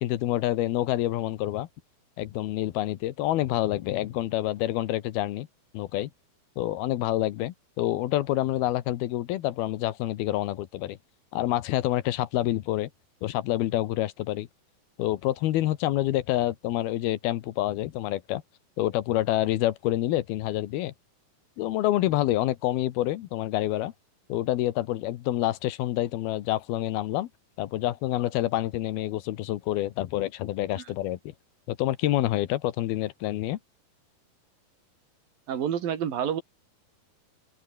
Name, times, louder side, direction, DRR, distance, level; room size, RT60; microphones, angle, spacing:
voice 1, 0.0-1.7 2.2-5.5 5.7-6.1 6.6-11.0 11.3-12.9 13.2-14.5 15.0-18.4 18.8-20.9 21.6-23.9 24.3-27.3 27.6-31.3 31.7-33.6, left 14 dB, 80° left, 3.0 m, -27 dB
voice 2, 35.5-36.4, right 9 dB, 65° right, 4.2 m, -28 dB
open air
omnidirectional pair, 4.5 m